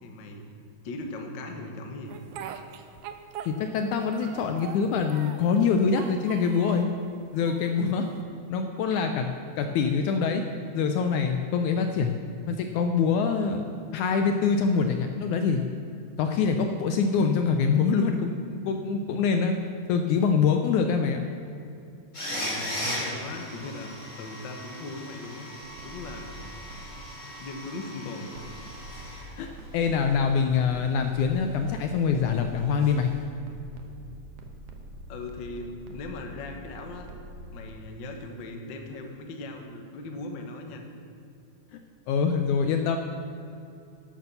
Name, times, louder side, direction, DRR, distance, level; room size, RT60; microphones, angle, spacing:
voice 1, 0.0-0.4 0.8-2.1 22.3-25.5 25.8-26.6 27.2-28.3 29.2-29.3 35.1-37.1 37.5-40.8, left 2 dB, 55° left, 3 dB, 1.3 m, -39 dB
Speech, 2.1-3.8 4.1-5.5 5.9-6.9 7.4-8.2, right 9 dB, 85° right, 2.4 m, -42 dB
voice 2, 3.5-6.9 7.3-8.1 8.5-10.4 10.7-12.2 12.5-15.6 16.2-19.5 19.9-21.2 29.4-29.5 29.7-33.1 41.7-41.8 42.1-43.0, left 5 dB, 75° left, 5 dB, 1.9 m, -25 dB
sound 1, 22.1-29.5 29.8-29.9 32.8-32.9, equal, 25° left, 2.8 m, -37 dB
sound 2, 25.6-27.0 28.3-37.7, equal, 65° right, 1.7 m, -45 dB
12.0 x 9.0 x 6.9 m, 2.7 s
omnidirectional pair, 4.0 m